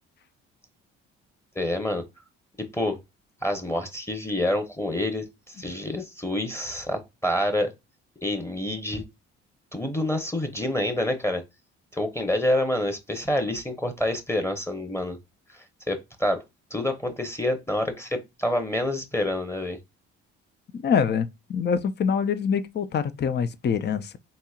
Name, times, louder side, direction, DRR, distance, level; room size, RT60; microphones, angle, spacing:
voice 1, 1.5-2.0 2.6-3.0 3.4-5.2 5.6-7.7 8.2-9.0 9.7-11.4 11.9-15.2 15.5-16.4 16.7-19.8, left 1 dB, 10° left, 0.9 m, -27 dB
voice 2, 20.7-24.1, left 6 dB, 35° left, 0.5 m, -25 dB
4.2 x 2.8 x 2.4 m
hypercardioid pair, 55°, 31 cm